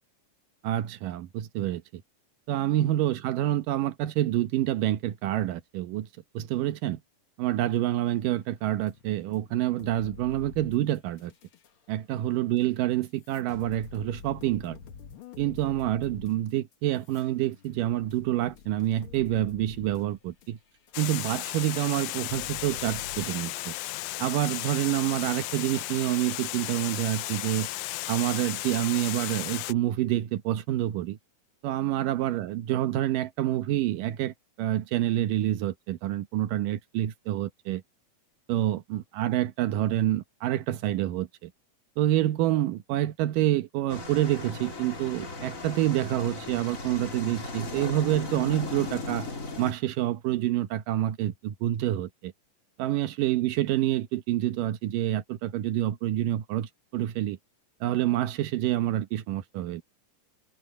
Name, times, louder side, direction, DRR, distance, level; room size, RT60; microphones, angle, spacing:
voice 1, 0.6-2.0 2.5-6.1 6.3-7.0 7.4-11.3 11.9-14.8 15.4-20.6 21.0-23.8 24.2-27.7 28.1-31.2 31.6-37.8 38.5-41.5 42.0-49.3 49.6-52.3 52.8-57.4 57.8-59.8, right 13 dB, 80° right, 2.6 m, -27 dB
sound 1, 8.4-11.7 12.6-12.7 13.0-21.4 21.8-21.9 22.3-23.3, left 6 dB, 55° left, 1.6 m, -47 dB
Water, 20.9-29.7, left 17 dB, 80° left, 1.9 m, -34 dB
sound 2, 43.9-49.7, left 3 dB, 25° left, 2.4 m, -37 dB
omnidirectional pair, 3.8 m